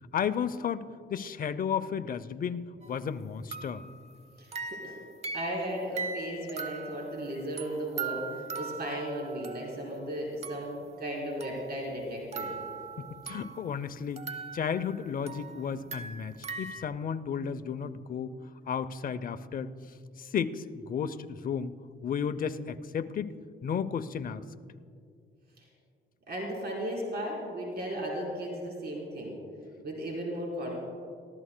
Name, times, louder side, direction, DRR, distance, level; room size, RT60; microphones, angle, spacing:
voice 1, 0.1-0.8 1.1-3.8 13.0-14.2 14.5-18.4 18.7-19.7 20.2-21.7 22.0-23.3 23.6-24.4, left 7 dB, 45° left, 11 dB, 0.6 m, -33 dB
sound 1, 2.8-3.0 3.5-10.0 10.4-10.9 11.4-13.7 14.2-16.8, right 5 dB, 35° right, 0.8 m, -40 dB
voice 2, 4.4-5.0 5.3-12.5 25.6-25.7 26.3-29.4 29.8-30.7, equal, 55° right, -2 dB, 3.7 m, -35 dB
25.5 x 14.0 x 2.2 m, 2.3 s
cardioid pair, 90°, 20 cm